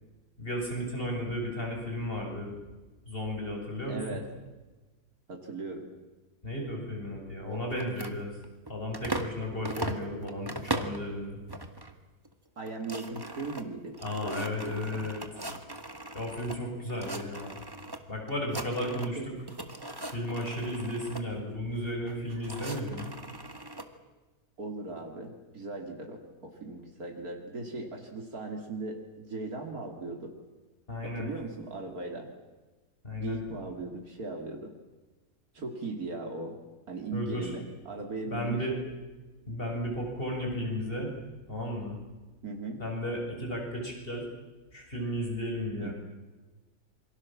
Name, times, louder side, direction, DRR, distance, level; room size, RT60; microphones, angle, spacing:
voice 1, 0.4-2.5 3.1-4.2 6.4-8.3 8.7-11.4 14.0-15.2 16.1-17.6 18.1-19.3 20.1-23.1 30.9-31.3 33.0-33.4 37.1-37.5 38.3-38.7 39.5-41.1 41.5-42.0 42.8-44.3 44.7-45.9, left 1 dB, 35° left, 1 dB, 7.1 m, -34 dB
voice 2, 3.9-4.3 5.3-5.9 7.5-7.6 12.6-15.1 18.9-19.3 20.8-20.9 24.6-30.3 31.0-32.3 33.2-34.7 35.5-36.6 36.9-38.6 42.4-42.8 45.8-45.9, right 3 dB, 70° right, 3 dB, 3.1 m, -38 dB
sound 1, 7.7-9.4 9.6-11.0 11.5-11.9 12.3-12.4 12.6-16.6 16.9-18.0 18.3-19.2 19.5-21.2 22.0-23.9, right 2 dB, 15° right, 1.8 m, -39 dB
27.5 x 24.5 x 7.4 m, 1.2 s
omnidirectional pair, 1.6 m